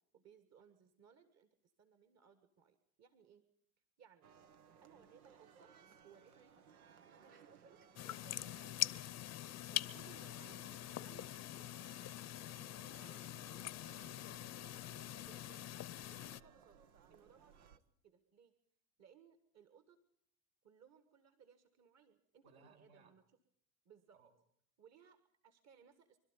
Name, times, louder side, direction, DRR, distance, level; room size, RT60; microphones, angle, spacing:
voice 1, 0.1-1.5 1.8-3.4 4.0-4.3 4.8-5.7 6.0-6.7 7.2-8.7 9.7-10.7 11.0-11.7 12.3-13.2 15.2-15.7 16.1-16.8 17.1-17.7 18.0-18.5 19.0-20.0 20.6-23.2 23.9-24.2 24.8-26.2, right 7 dB, 40° right, 10 dB, 1.8 m, -65 dB
sound 1, 4.2-17.8, right 7 dB, 90° right, 1.3 m, -63 dB
sound 2, 8.0-16.4, left 14 dB, 40° left, 0.8 m, -44 dB
voice 2, 13.8-15.0 22.4-23.1 24.1-24.3, right 3 dB, 70° right, 2 dB, 5.2 m, -66 dB
25.5 x 12.5 x 9.1 m, 0.68 s
hypercardioid pair, 90°, 42 cm